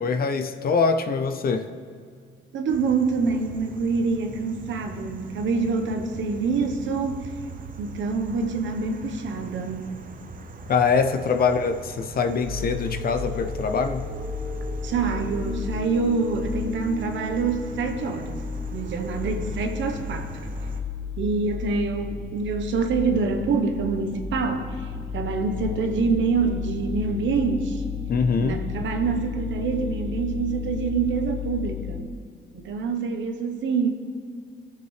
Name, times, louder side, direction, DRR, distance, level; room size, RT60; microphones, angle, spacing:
voice 1, 0.0-1.7 10.7-14.1 28.1-28.6, left 5 dB, 50° left, 8 dB, 0.7 m, -23 dB
voice 2, 2.5-7.3 7.8-9.9 14.8-18.4 18.7-20.3 21.2-27.8 28.4-32.1 32.5-33.9, right 4 dB, 70° right, 5 dB, 1.1 m, -26 dB
sound 1, 2.7-20.8, right 4 dB, 45° right, 0.8 m, -41 dB
sound 2, 12.4-32.0, left 5 dB, 30° left, 1.5 m, -33 dB
17.5 x 6.8 x 3.3 m, 2.1 s
cardioid pair, 90°, 20 cm